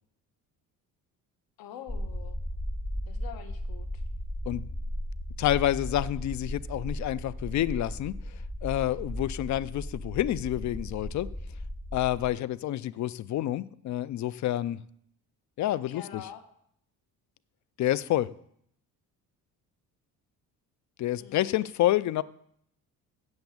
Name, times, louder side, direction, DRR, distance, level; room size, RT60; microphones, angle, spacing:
voice 1, 1.6-2.4 3.1-4.0 15.7-16.4 21.2-21.7, left 9 dB, 85° left, 9 dB, 1.2 m, -45 dB
sound 1, 1.9-12.3, equal, 30° left, 2.2 m, -36 dB
voice 2, 5.4-8.1 8.6-11.3 11.9-14.8 15.6-16.2 17.8-18.3 21.0-22.2, left 13 dB, 55° left, 19 dB, 0.5 m, -28 dB
8.0 x 7.8 x 7.1 m, 0.70 s
cardioid pair, 105°, 35 cm